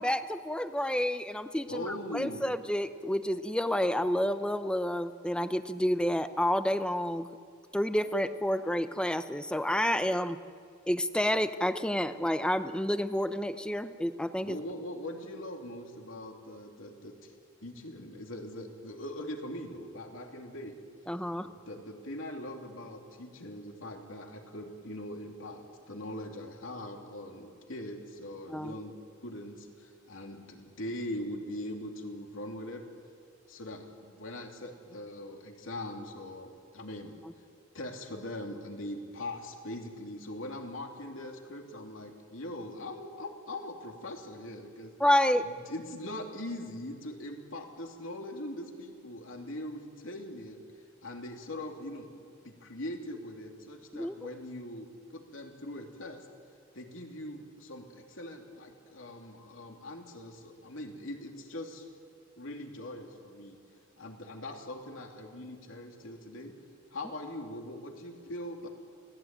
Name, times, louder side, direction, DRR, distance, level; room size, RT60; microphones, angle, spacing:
voice 1, 0.0-7.3 7.7-10.4 10.9-14.6 21.1-21.5 28.5-28.7 45.0-45.5 53.9-54.1, left 1 dB, 5° left, 10 dB, 0.9 m, -29 dB
voice 2, 1.7-2.4 14.4-17.3 17.6-20.8 21.4-28.9 29.2-32.8 33.5-37.2 37.7-44.9 45.4-50.6 51.0-52.1 52.4-56.3 56.7-61.8 62.4-63.6 64.0-66.5 66.9-68.7, left 1 dB, 70° left, 2 dB, 3.1 m, -41 dB
28.5 x 18.0 x 9.2 m, 2.2 s
head